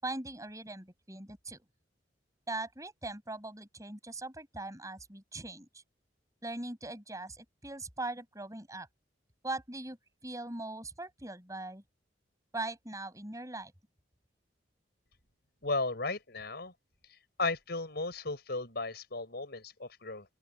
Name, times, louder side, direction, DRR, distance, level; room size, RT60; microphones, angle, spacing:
voice 1, 0.0-1.6 2.5-5.8 6.4-8.9 9.4-10.0 10.2-11.8 12.5-13.7, right 2 dB, 20° right, 7.7 m, -40 dB
voice 2, 15.6-16.7 17.4-20.2, left 3 dB, 60° left, 6.6 m, -35 dB
open air
head